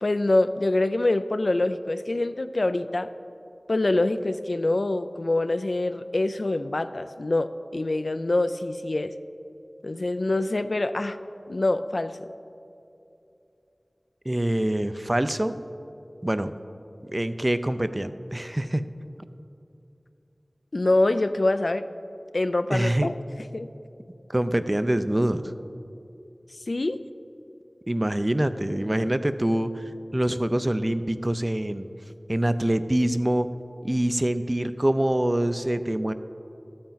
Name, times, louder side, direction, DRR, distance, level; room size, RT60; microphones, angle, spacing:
voice 1, 0.0-3.1 3.7-9.1 9.8-11.2 11.5-12.3 20.7-21.9 22.3-23.1 23.5-23.7 26.7-27.0, left 2 dB, 70° left, 11 dB, 0.3 m, -25 dB
voice 2, 14.3-15.5 16.2-16.5 17.1-18.8 22.7-23.1 24.3-25.5 27.9-29.8 30.1-31.9 32.3-33.5 33.8-36.1, right 1 dB, 30° right, 11 dB, 0.4 m, -25 dB
13.0 x 8.5 x 4.0 m, 2.7 s
wide cardioid pair, 45°, 0 cm